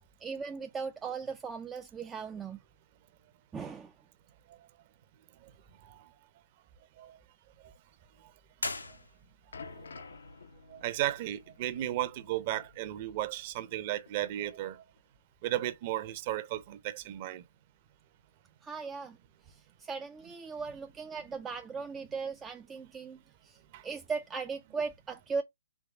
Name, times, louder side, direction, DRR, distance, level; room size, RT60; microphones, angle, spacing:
voice 1, 0.2-2.6 3.5-3.9 18.6-19.2 19.5-23.6 23.8-25.4, right 5 dB, 10° right, 0.3 m, -38 dB
sound 1, 8.5-9.6, left 3 dB, 90° left, 1.0 m, -38 dB
sound 2, 8.9-13.8 14.1-14.2 15.0-15.1, left 5 dB, 70° left, 0.6 m, -51 dB
voice 2, 9.6-10.0 10.7-14.8 15.4-17.4 23.7-23.8, right 14 dB, 35° right, 0.7 m, -35 dB
4.7 x 3.4 x 3.3 m
figure-of-eight pair, 135°, 0 cm